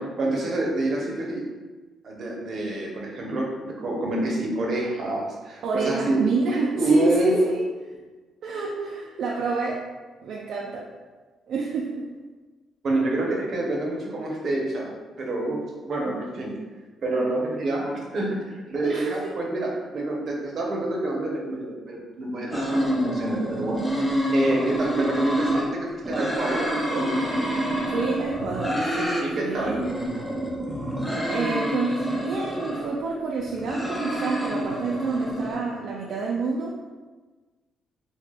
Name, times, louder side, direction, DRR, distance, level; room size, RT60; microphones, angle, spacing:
voice 1, 0.0-1.5 2.0-6.3 6.8-7.4 12.8-14.9 15.2-16.6 17.0-23.9 24.3-27.5 29.2-29.9, right 2 dB, 55° right, -1 dB, 0.7 m, -27 dB
voice 2, 5.6-7.7 8.4-9.9 10.2-10.9 11.5-12.1 18.8-19.3 27.9-29.9 31.3-36.8, right 4 dB, 70° right, -2 dB, 0.3 m, -28 dB
sound 1, 22.5-25.7 26.0-29.2 29.6-32.9 33.4-35.6, equal, 5° left, 0.6 m, -28 dB
2.8 x 2.2 x 3.3 m, 1.3 s
cardioid pair, 90°, 0 cm